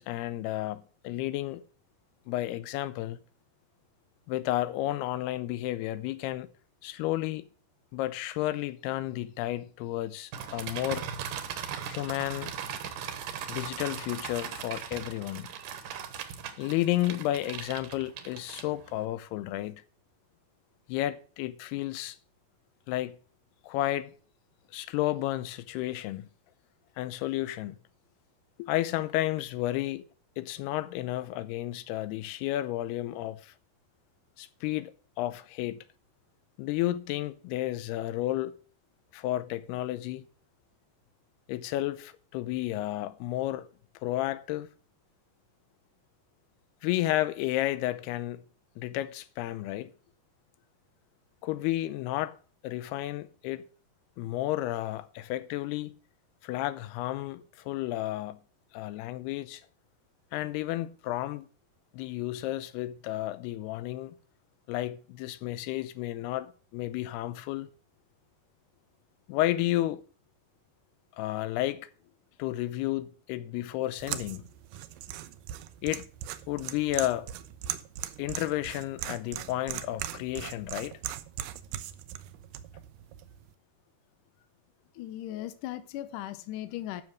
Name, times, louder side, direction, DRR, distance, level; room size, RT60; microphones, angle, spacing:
voice 1, 0.0-1.6 2.3-3.2 4.3-6.5 6.8-7.5 7.9-11.1 11.8-12.5 13.5-15.5 16.6-19.8 20.9-22.2 22.9-23.2 23.6-24.1 24.7-26.3 27.0-27.8 28.6-30.0 30.4-33.5 34.4-35.8 36.6-38.5 39.1-40.2 41.5-43.7 44.0-44.7 46.8-48.4 48.8-49.9 51.4-52.4 52.6-53.6 54.2-56.0 56.4-58.4 58.7-59.6 60.3-61.5 61.9-64.2 64.7-67.7 69.3-70.0 71.2-71.9 72.4-74.4 75.8-76.1 76.5-77.3 78.2-81.0, left 15 dB, 90° left, 2.7 m, -32 dB
sound 1, 10.3-19.0, right 8 dB, 65° right, 2.4 m, -39 dB
sound 2, 74.0-83.5, right 12 dB, 80° right, 2.0 m, -40 dB
voice 2, 85.0-87.0, left 13 dB, 75° left, 2.0 m, -37 dB
10.5 x 6.4 x 6.2 m
omnidirectional pair, 4.5 m